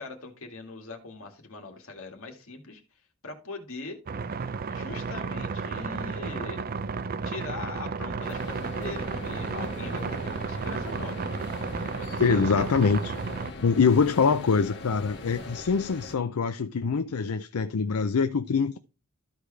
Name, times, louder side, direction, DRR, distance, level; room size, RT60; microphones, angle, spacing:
voice 1, 0.0-2.8 3.2-4.0 4.7-6.6 7.2-11.4 11.8-12.7, left 3 dB, 70° left, 2.1 m, -41 dB
sound 1, 4.1-13.5, right 4 dB, 45° right, 0.5 m, -33 dB
sound 2, 8.2-16.2, left 2 dB, 55° left, 1.7 m, -41 dB
voice 2, 12.2-13.1 13.6-18.8, left 5 dB, 85° left, 0.5 m, -24 dB
13.5 x 4.8 x 3.3 m
head